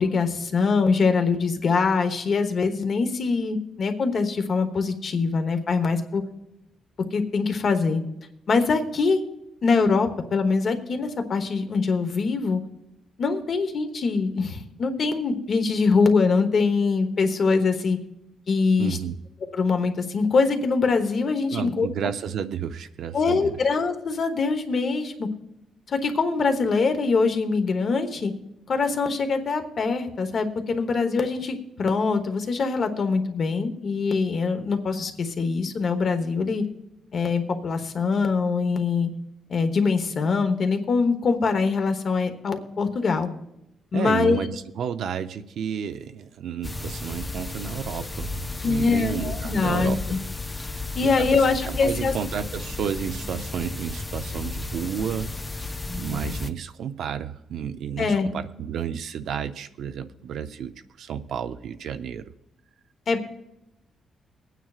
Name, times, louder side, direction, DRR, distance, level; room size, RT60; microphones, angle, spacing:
voice 1, 0.0-6.2 7.1-8.0 8.5-9.2 9.6-12.6 13.2-18.0 18.5-19.0 19.5-21.9 23.1-25.3 25.9-28.3 28.7-36.6 37.1-39.1 39.5-43.3 43.9-44.4 48.6-50.2 50.9-52.1 58.0-58.3 63.1-63.2, left 4 dB, 45° left, 7 dB, 1.1 m, -23 dB
voice 2, 18.8-19.1 21.5-23.6 43.9-50.2 50.5-60.7 61.0-62.2, right 8 dB, 70° right, 9 dB, 0.5 m, -32 dB
sound 1, 46.6-56.5, left 3 dB, 15° left, 0.4 m, -33 dB
23.0 x 9.1 x 2.4 m, 0.88 s
cardioid pair, 145°, 0 cm